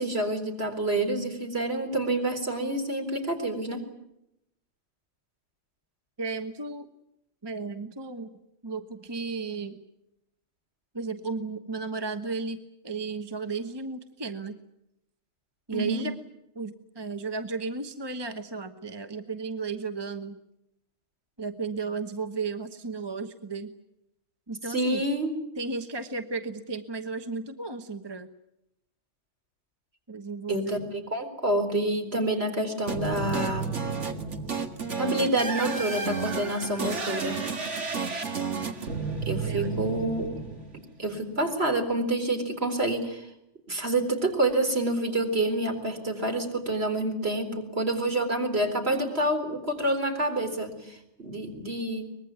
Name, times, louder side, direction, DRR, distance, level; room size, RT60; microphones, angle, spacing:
voice 1, 0.0-3.8 15.7-16.1 24.7-25.3 30.5-30.8 31.1-33.7 35.0-37.4 39.3-40.3 41.0-43.3 43.7-52.1, right 1 dB, 55° right, 4 dB, 4.5 m, -28 dB
voice 2, 6.2-6.9 7.4-8.4 8.6-9.8 10.9-12.6 12.8-14.6 15.7-16.2 16.5-20.4 21.4-23.7 24.5-25.0 25.6-28.3 30.1-30.8 39.4-39.7, right 4 dB, 20° right, 7 dB, 1.1 m, -34 dB
sound 1, 32.9-41.1, right 5 dB, 75° right, 2.3 m, -32 dB
24.0 x 21.0 x 9.4 m, 0.84 s
omnidirectional pair, 1.2 m